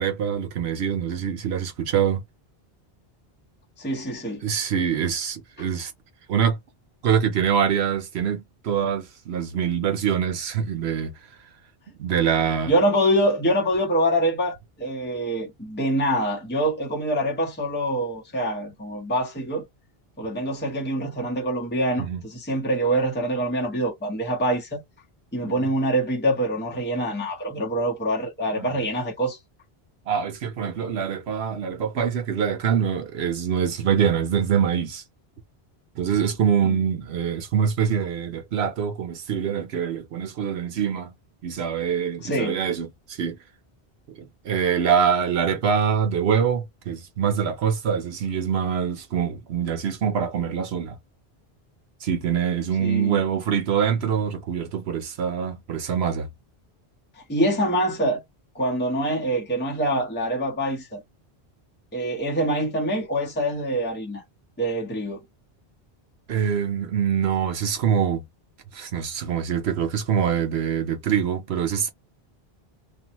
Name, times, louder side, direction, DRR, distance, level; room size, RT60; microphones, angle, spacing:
voice 1, 0.0-2.2 4.4-5.9 6.3-6.6 7.0-11.1 12.0-12.7 22.0-22.2 25.4-25.7 28.6-28.8 30.1-35.0 36.0-41.1 41.4-43.4 44.2-51.0 52.0-56.3 66.3-68.2 68.7-71.9, right 7 dB, 80° right, 1.0 m, -24 dB
voice 2, 3.8-4.4 12.7-19.6 20.2-24.8 25.3-29.4 36.6-36.8 42.2-42.6 52.8-53.2 57.3-58.2 58.5-61.0 61.9-64.2 64.6-65.2, right 1 dB, 10° left, 0.8 m, -25 dB
2.6 x 2.2 x 2.9 m
omnidirectional pair, 1.1 m